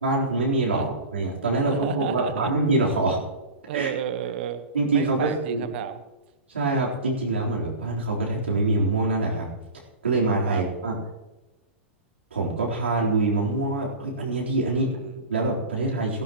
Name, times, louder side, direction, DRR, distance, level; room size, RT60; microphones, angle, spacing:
voice 1, 0.0-3.2 3.7-3.9 4.7-5.7 6.5-9.5 10.0-11.0 12.3-16.2, right 2 dB, 85° right, -4 dB, 3.7 m, -25 dB
voice 2, 1.6-2.5 3.7-4.7 4.9-6.0 10.5-10.6 14.7-15.0, right 10 dB, 65° right, 11 dB, 1.1 m, -32 dB
18.0 x 15.5 x 3.0 m, 1.1 s
hypercardioid pair, 95°, 6 cm